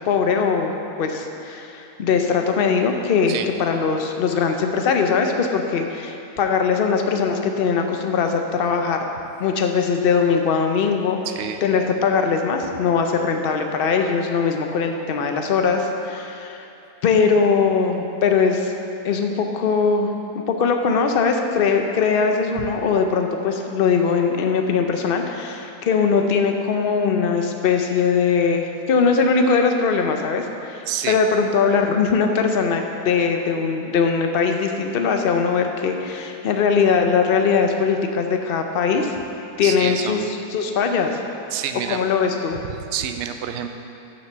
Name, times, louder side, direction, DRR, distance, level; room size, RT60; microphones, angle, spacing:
voice 1, 0.1-9.1 9.4-11.2 11.6-16.7 17.0-18.7 19.0-39.1 39.6-40.2 40.5-41.2 41.9-42.6, left 5 dB, 70° left, 4 dB, 0.5 m, -21 dB
voice 2, 11.3-11.6 30.9-31.2 39.6-40.3 41.5-42.0 42.6-43.7, right 9 dB, 75° right, 7 dB, 0.6 m, -28 dB
7.3 x 5.9 x 6.6 m, 2.8 s
omnidirectional pair, 1.7 m